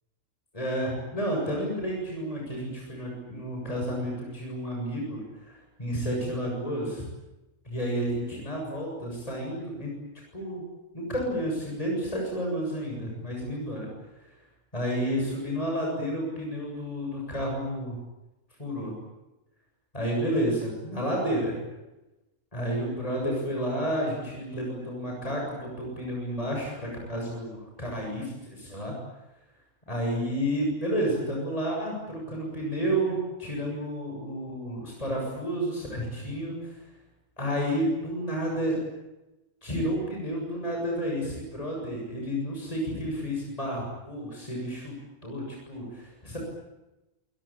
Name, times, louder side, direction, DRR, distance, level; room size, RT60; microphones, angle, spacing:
voice 1, 0.5-7.1 7.7-9.9 10.3-10.6 10.9-13.9 14.7-18.0 18.6-18.9 19.9-21.6 22.5-29.0 29.9-36.7 37.4-38.8 39.6-44.9 45.2-46.4, equal, 25° left, -1 dB, 7.4 m, -31 dB
28.0 x 20.5 x 8.8 m, 1.0 s
omnidirectional pair, 1.5 m